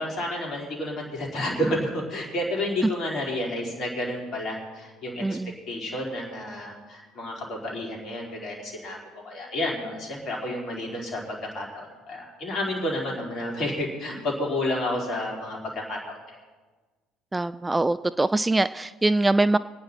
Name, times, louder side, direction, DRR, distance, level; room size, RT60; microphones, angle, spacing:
voice 1, 0.0-5.4 5.7-9.0 9.2-16.2, left 1 dB, 50° left, -1 dB, 4.3 m, -30 dB
voice 2, 5.2-5.5 17.3-19.6, right 2 dB, 15° right, 14 dB, 0.3 m, -23 dB
25.5 x 9.5 x 4.4 m, 1.3 s
figure-of-eight pair, 60°, 0 cm